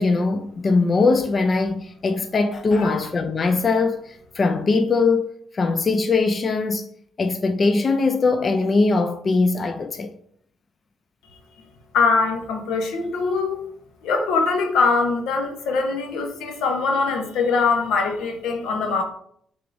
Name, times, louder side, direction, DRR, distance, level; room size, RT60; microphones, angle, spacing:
voice 1, 0.0-5.3 5.5-6.9 7.2-10.1, left 3 dB, 40° left, 0.3 m, -21 dB
voice 2, 11.9-13.6 14.0-19.0, left 4 dB, 85° left, 0.8 m, -22 dB
4.6 x 3.5 x 2.5 m
cardioid pair, 90°, 0 cm